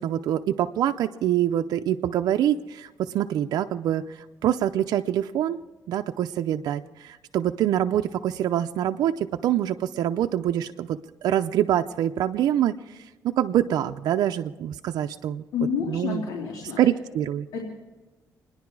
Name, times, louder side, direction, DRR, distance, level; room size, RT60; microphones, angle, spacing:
voice 1, 0.0-5.6 5.9-15.4 15.9-16.2 16.8-17.5, right 11 dB, 85° right, 5 dB, 0.5 m, -25 dB
voice 2, 15.5-16.9 17.5-17.6, left 6 dB, 80° left, -2 dB, 3.0 m, -29 dB
28.5 x 10.5 x 4.7 m, 1.1 s
cardioid pair, 85°, 7 cm